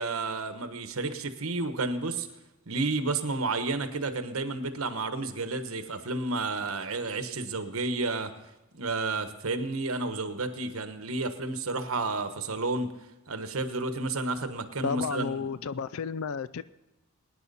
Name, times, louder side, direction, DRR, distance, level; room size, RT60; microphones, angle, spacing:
voice 1, 0.0-2.3 2.7-8.3 8.7-12.9 13.3-15.5, right 3 dB, 75° right, 9 dB, 1.2 m, -31 dB
voice 2, 14.8-16.6, left 5 dB, 75° left, 17 dB, 0.4 m, -32 dB
23.0 x 9.9 x 4.1 m, 0.99 s
head